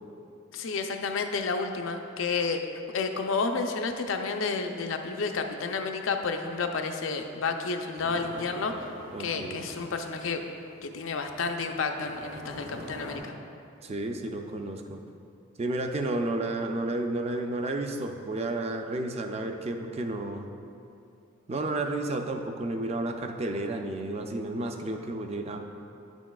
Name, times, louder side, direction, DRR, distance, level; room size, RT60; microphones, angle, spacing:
voice 1, 0.5-2.6 2.9-8.9 9.2-10.4 10.8-13.3, left 4 dB, 85° left, 5 dB, 0.5 m, -30 dB
sound 1, 8.0-13.2, equal, 80° right, 1.1 m, -45 dB
voice 2, 9.1-9.6 13.8-15.0 15.6-20.5 21.5-25.6, right 2 dB, 30° right, 5 dB, 0.4 m, -31 dB
9.5 x 6.1 x 2.3 m, 2.6 s
head